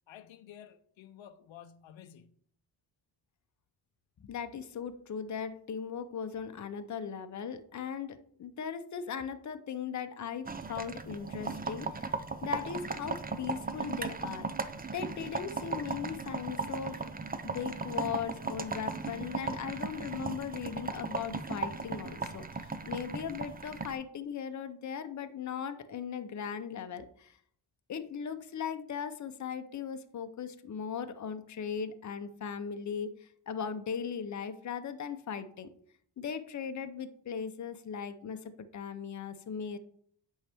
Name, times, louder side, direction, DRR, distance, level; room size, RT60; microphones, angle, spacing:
voice 1, 0.1-2.4, left 10 dB, 80° left, 0.6 m, -52 dB
voice 2, 4.2-14.5 14.9-17.0 17.4-27.3 27.9-35.7 36.2-38.4 38.7-39.8, left 7 dB, 40° left, 0.7 m, -38 dB
sound 1, 10.5-23.9, right 4 dB, 20° right, 0.5 m, -37 dB
8.6 x 5.5 x 3.5 m
cardioid pair, 110°, 45 cm